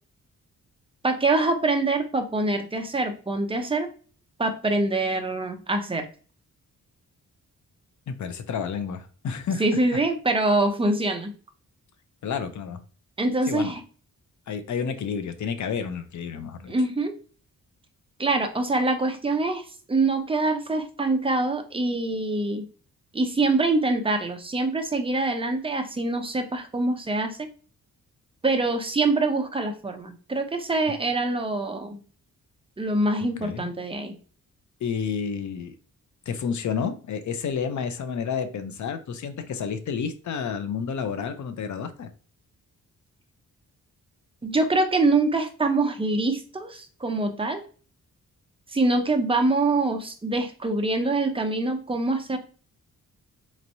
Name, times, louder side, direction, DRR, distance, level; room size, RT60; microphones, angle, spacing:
voice 1, 1.0-3.9 4.4-6.1 9.6-11.3 13.2-13.8 16.7-17.1 18.2-22.7 23.1-27.5 28.4-32.0 32.8-34.1 44.4-47.6 48.7-52.4, right 2 dB, 15° right, 5 dB, 0.7 m, -24 dB
voice 2, 8.1-9.6 12.2-12.8 13.5-13.7 14.5-16.7 33.4-33.7 34.8-35.7 36.3-42.1, left 6 dB, 60° left, 9 dB, 0.6 m, -30 dB
4.3 x 3.0 x 2.6 m, 0.39 s
cardioid pair, 100°, 33 cm